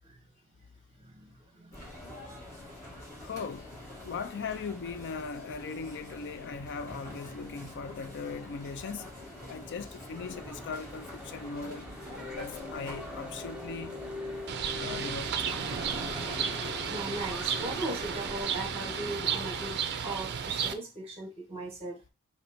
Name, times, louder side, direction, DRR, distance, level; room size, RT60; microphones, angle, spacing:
voice 1, 1.0-2.4 16.9-19.8 20.0-22.0, right 2 dB, 25° right, 1.6 m, -39 dB
sound 1, 1.7-19.7, left 2 dB, 15° left, 2.2 m, -44 dB
voice 2, 3.2-3.7 4.0-9.1 9.5-11.9 12.3-14.0 14.7-15.6, left 5 dB, 55° left, 0.4 m, -39 dB
Church bell / Traffic noise roadway noise, 10.2-18.5, right 1 dB, 5° right, 0.9 m, -47 dB
Bird, 14.5-20.7, right 7 dB, 50° right, 0.5 m, -33 dB
4.3 x 2.8 x 4.3 m
head